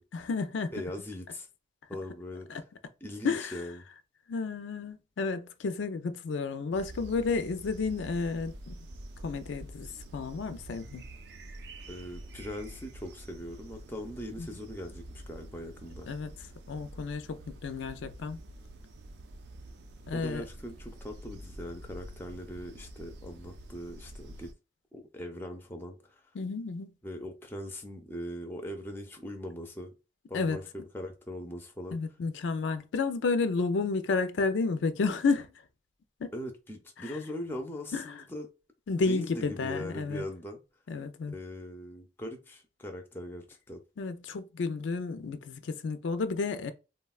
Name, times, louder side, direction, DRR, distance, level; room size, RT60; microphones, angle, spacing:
voice 1, 0.1-0.7 2.5-2.6 3.2-3.5 4.3-8.7 9.2-9.9 10.1-11.0 14.4-14.5 16.1-16.3 16.7-18.4 20.1-20.4 26.3-26.9 30.3-30.6 31.9-35.5 36.2-36.3 37.0-37.2 37.9-38.1 38.9-40.2 40.9-41.3 44.0-46.7, left 4 dB, 90° left, 0.4 m, -31 dB
voice 2, 0.7-1.5 1.9-2.6 3.0-3.8 11.9-16.1 20.1-24.5 24.9-26.2 27.0-29.9 30.3-32.0 36.3-38.5 39.1-40.6 41.3-43.8, left 1 dB, 10° left, 0.4 m, -40 dB
sound 1, 6.7-24.5, right 1 dB, 65° right, 0.4 m, -47 dB
3.5 x 2.2 x 2.3 m
head